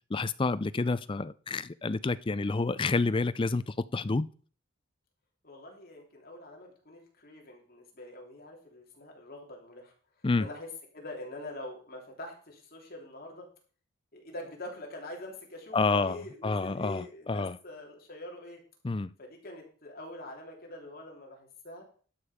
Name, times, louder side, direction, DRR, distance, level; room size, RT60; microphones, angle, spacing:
voice 1, 0.1-4.3 10.2-10.5 15.7-17.6 18.8-19.1, left 3 dB, 25° left, 0.4 m, -29 dB
voice 2, 5.4-9.9 10.4-10.7 10.9-13.5 14.1-18.6 19.2-21.8, left 1 dB, 45° left, 3.2 m, -45 dB
12.0 x 6.5 x 5.0 m
head